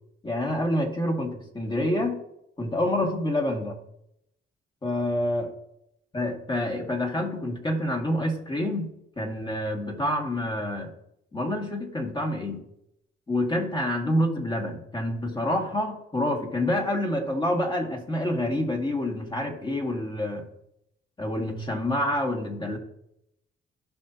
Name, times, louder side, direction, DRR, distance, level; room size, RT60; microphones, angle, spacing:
voice 1, 0.2-2.2 2.6-3.8 4.8-5.5 6.1-10.9 11.3-12.6 13.3-20.5 21.2-22.8, left 1 dB, 25° left, 2 dB, 2.2 m, -27 dB
15.5 x 5.7 x 2.9 m, 0.79 s
cardioid pair, 90°, 20 cm